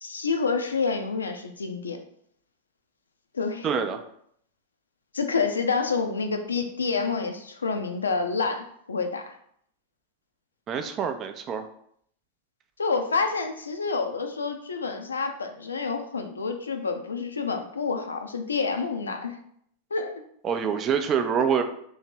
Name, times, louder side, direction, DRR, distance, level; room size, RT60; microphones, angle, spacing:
voice 1, 0.0-2.0 3.3-3.7 5.1-9.4 12.8-19.4 19.9-20.2, left 4 dB, 75° left, 6 dB, 0.4 m, -28 dB
voice 2, 3.6-4.0 10.7-11.6 20.4-21.6, right 7 dB, 30° right, 7 dB, 0.4 m, -26 dB
2.8 x 2.8 x 4.4 m, 0.67 s
figure-of-eight pair, 90°, 0 cm